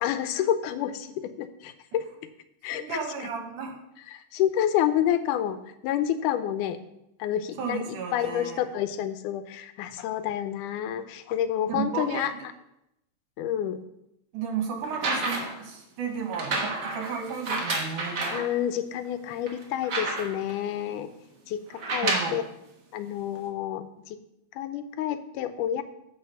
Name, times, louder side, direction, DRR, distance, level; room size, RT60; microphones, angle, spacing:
voice 1, 0.0-2.1 2.6-3.3 4.1-5.6 5.8-6.8 7.2-12.3 13.4-13.8 18.3-21.1 21.5-22.4 22.9-24.2 24.5-25.8, left 10 dB, 85° left, 11 dB, 2.2 m, -29 dB
voice 2, 2.7-3.7 7.6-8.6 11.7-12.4 14.3-18.4 22.0-22.4, right 6 dB, 80° right, 3 dB, 2.8 m, -33 dB
sound 1, 14.8-15.6 16.3-18.5 19.0-19.1 19.5-20.5 21.7-22.4 23.4-23.5, right 2 dB, 45° right, 1.3 m, -30 dB
9.9 x 4.9 x 7.0 m, 0.83 s
omnidirectional pair, 3.6 m